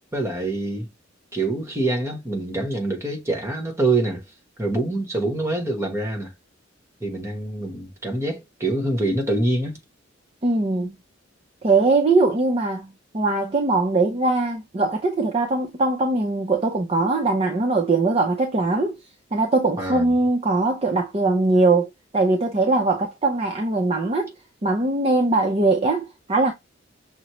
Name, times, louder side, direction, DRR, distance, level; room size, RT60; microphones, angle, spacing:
voice 1, 0.1-0.9 1.3-4.2 4.6-6.3 7.0-9.8 19.8-20.1, right 2 dB, 15° right, 1.2 m, -25 dB
voice 2, 10.4-11.0 11.6-19.0 19.3-24.3 24.6-26.5, right 3 dB, 30° right, 0.6 m, -21 dB
6.2 x 2.1 x 3.0 m
head